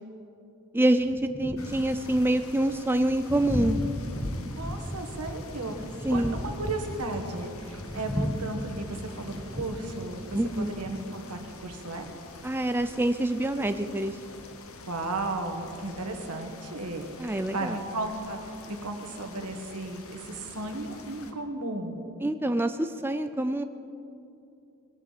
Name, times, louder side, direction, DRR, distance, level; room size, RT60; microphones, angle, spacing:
voice 1, 0.7-3.8 6.1-6.4 10.3-10.7 12.4-14.2 17.2-17.9 22.2-23.6, right 1 dB, 10° right, 8 dB, 0.4 m, -26 dB
Thunder, 1.0-16.3, equal, 15° left, 1.0 m, -37 dB
sound 1, 1.6-21.3, left 3 dB, 65° left, 1.2 m, -48 dB
voice 2, 4.6-5.7 6.1-12.1 14.9-18.4 18.7-22.0, right 2 dB, 85° right, 4 dB, 1.7 m, -35 dB
20.0 x 14.0 x 4.2 m, 2.6 s
head